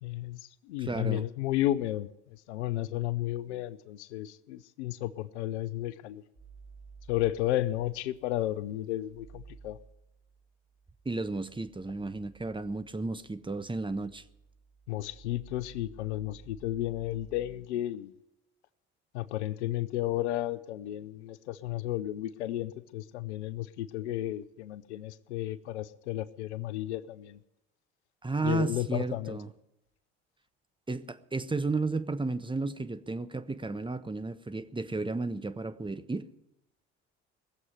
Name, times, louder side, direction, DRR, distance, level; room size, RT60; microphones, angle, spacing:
voice 1, 0.0-6.2 7.1-9.8 14.9-18.1 19.1-27.4 28.4-29.4, left 14 dB, 85° left, 0.7 m, -33 dB
voice 2, 0.8-1.2 11.0-14.2 28.2-29.5 30.9-36.3, right 3 dB, 15° right, 1.2 m, -33 dB
sound 1, 6.3-17.5, right 5 dB, 80° right, 6.9 m, -55 dB
18.5 x 7.9 x 9.6 m
hypercardioid pair, 60°, 33 cm